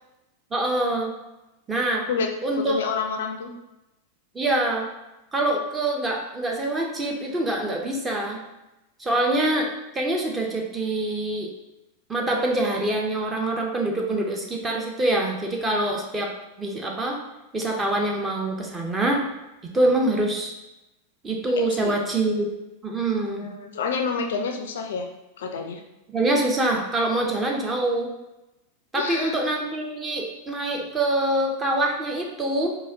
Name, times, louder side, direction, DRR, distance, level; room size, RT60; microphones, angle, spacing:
voice 1, 0.5-1.1 1.7-2.0 2.4-2.8 4.3-4.9 5.3-8.4 9.0-9.7 9.9-11.5 12.1-16.3 16.6-17.2 17.5-19.3 19.7-20.5 21.2-22.5 22.8-23.5 26.1-28.1 28.9-32.7, right 1 dB, 15° right, 0 dB, 0.6 m, -25 dB
voice 2, 2.6-3.5 21.6-21.9 23.2-25.1 25.4-25.8 29.0-29.4, left 5 dB, 60° left, 4 dB, 0.3 m, -28 dB
3.9 x 2.8 x 2.6 m, 0.96 s
figure-of-eight pair, 90°, 0 cm